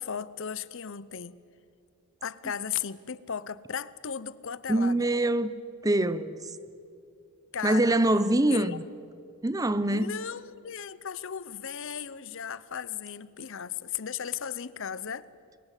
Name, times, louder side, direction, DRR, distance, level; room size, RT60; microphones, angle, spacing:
voice 1, 0.0-1.4 2.2-5.1 7.5-7.9 8.5-8.8 9.9-15.3, left 7 dB, 60° left, 0.8 m, -36 dB
voice 2, 4.7-5.5 5.8-6.4 7.6-8.8 9.4-10.1, right 1 dB, 15° right, 0.8 m, -24 dB
29.5 x 23.5 x 8.3 m
head